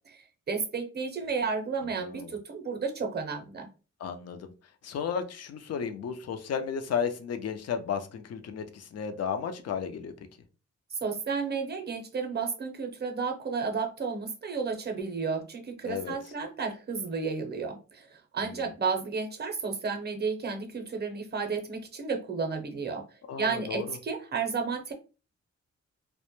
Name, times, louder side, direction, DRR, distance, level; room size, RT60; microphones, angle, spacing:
voice 1, 0.1-3.7 10.9-23.0 23.4-24.9, right 5 dB, 35° right, 6 dB, 0.6 m, -32 dB
voice 2, 2.0-2.3 4.0-4.5 4.8-10.1 15.8-16.1 18.4-18.7 23.3-23.9, left 7 dB, 60° left, 7 dB, 0.5 m, -33 dB
2.1 x 2.0 x 2.9 m, 0.33 s
cardioid pair, 85°, 29 cm